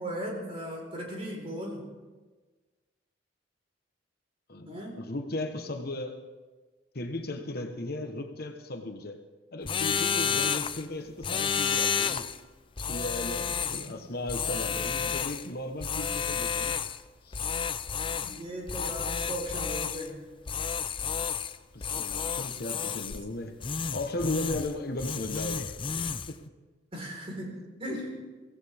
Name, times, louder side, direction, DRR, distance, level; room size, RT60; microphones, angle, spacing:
voice 1, 0.0-1.9 4.6-5.1 13.5-14.0 18.0-20.2 26.9-28.2, equal, 30° right, 0 dB, 4.4 m, -38 dB
voice 2, 4.5-6.2 6.9-9.2 9.5-12.3 12.8-16.8 17.2-17.4 21.7-23.6 23.9-25.8 26.3-26.4 27.9-28.0, left 2 dB, 55° left, 5 dB, 1.2 m, -36 dB
sound 1, 9.6-10.8 11.2-12.4 12.8-13.9 14.3-15.5 15.8-17.0 17.3-18.4 18.7-20.1 20.5-21.6 21.8-23.2 23.6-24.7 25.0-26.3, left 6 dB, 30° left, 0.5 m, -31 dB
23.5 x 16.5 x 3.6 m, 1.3 s
head